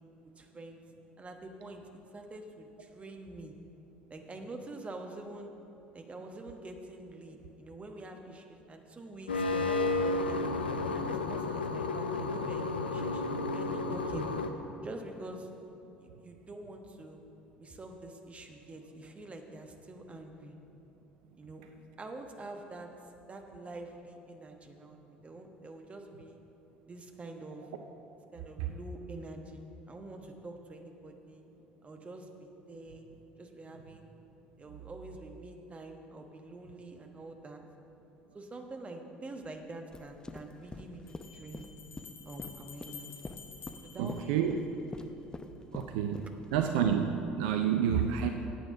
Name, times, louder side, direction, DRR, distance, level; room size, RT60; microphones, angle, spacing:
voice 1, 0.4-0.8 1.2-3.5 4.1-5.5 5.9-10.5 10.9-14.3 14.8-15.5 16.0-17.2 17.6-20.6 21.4-21.6 22.0-26.4 26.9-27.7 28.3-29.6 29.9-31.4 31.8-33.0 33.4-34.1 34.6-37.6 38.3-41.7 42.2-43.3 43.8-44.5, right 2 dB, 25° right, 4 dB, 1.2 m, -46 dB
sound 1, 9.3-14.5, left 3 dB, 85° left, 0.5 m, -32 dB
sound 2, 39.4-39.5 41.1-45.0, left 6 dB, 45° left, 1.3 m, -50 dB
sound 3, 39.9-46.8, left 2 dB, 15° left, 0.6 m, -45 dB
voice 2, 44.0-44.6 45.7-46.2 46.5-48.3, right 8 dB, 65° right, 5 dB, 0.5 m, -29 dB
9.3 x 8.6 x 5.9 m, 2.9 s
figure-of-eight pair, 60°, 5 cm